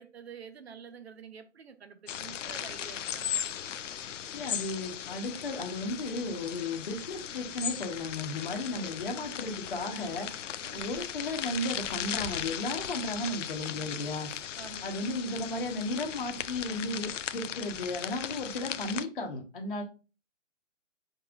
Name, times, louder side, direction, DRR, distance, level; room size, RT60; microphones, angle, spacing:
voice 1, 0.0-3.3 8.7-9.0 10.6-10.9 14.3-15.2, right 6 dB, 55° right, 0.7 m, -49 dB
sound 1, 2.1-19.0, left 9 dB, 75° left, 0.5 m, -37 dB
voice 2, 4.3-10.3 10.7-14.3 14.8-19.8, left 2 dB, 45° left, 1.0 m, -34 dB
5.2 x 4.0 x 2.4 m
hypercardioid pair, 170°, 37 cm